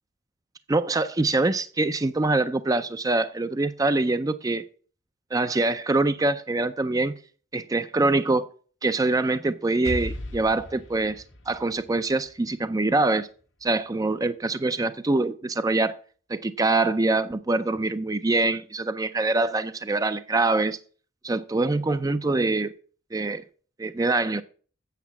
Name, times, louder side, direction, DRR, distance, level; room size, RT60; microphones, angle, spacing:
voice 1, 0.7-4.6 5.3-7.1 7.5-8.5 8.8-13.3 13.6-15.9 16.3-20.8 21.2-22.7 23.1-23.4 23.8-24.4, right 2 dB, 15° right, 11 dB, 0.4 m, -24 dB
Explosion, 9.8-13.6, equal, 65° left, 1.4 m, -38 dB
8.2 x 6.8 x 7.2 m, 0.41 s
head